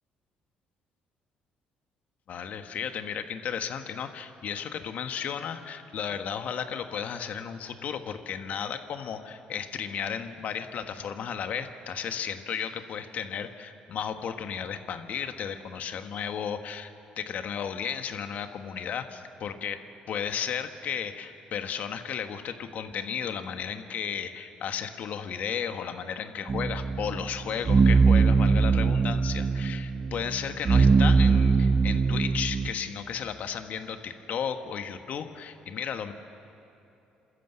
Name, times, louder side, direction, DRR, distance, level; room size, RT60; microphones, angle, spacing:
voice 1, 2.3-16.9 17.2-19.8 20.1-36.1, left 7 dB, 60° left, 8 dB, 1.5 m, -34 dB
sound 1, 26.5-32.7, right 4 dB, 35° right, 0.8 m, -22 dB
28.5 x 13.5 x 8.0 m, 2.9 s
supercardioid pair, 80°, 3 cm